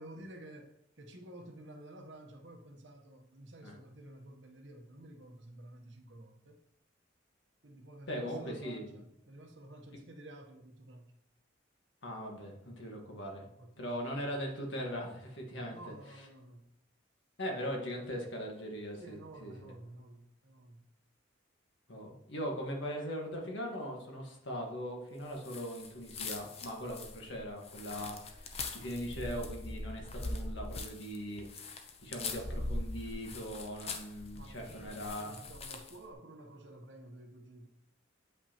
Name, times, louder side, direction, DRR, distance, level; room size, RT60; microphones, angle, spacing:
voice 1, 0.0-6.6 7.6-11.1 13.4-14.2 15.7-16.7 18.9-20.9 34.3-37.7, right 1 dB, 70° right, 3 dB, 0.9 m, -52 dB
voice 2, 8.1-9.0 12.0-13.4 13.8-15.7 17.4-19.7 21.9-35.3, equal, 75° left, 1 dB, 1.5 m, -40 dB
sound 1, 25.4-36.0, left 2 dB, 30° left, 0.6 m, -42 dB
8.1 x 5.3 x 2.9 m, 0.84 s
head